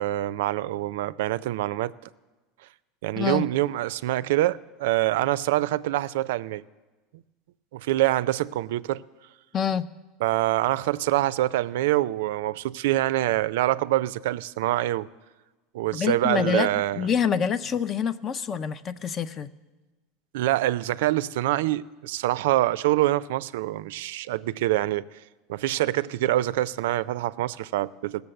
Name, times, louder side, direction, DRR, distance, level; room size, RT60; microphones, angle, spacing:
voice 1, 0.0-1.9 3.0-6.6 7.7-9.0 10.2-15.1 15.7-17.1 20.3-25.0 25.5-28.2, right 15 dB, 80° right, 0.3 m, -25 dB
voice 2, 3.2-3.5 9.5-9.9 15.9-19.5, left 7 dB, 35° left, 0.5 m, -26 dB
15.5 x 6.9 x 7.8 m
supercardioid pair, 125°, 0 cm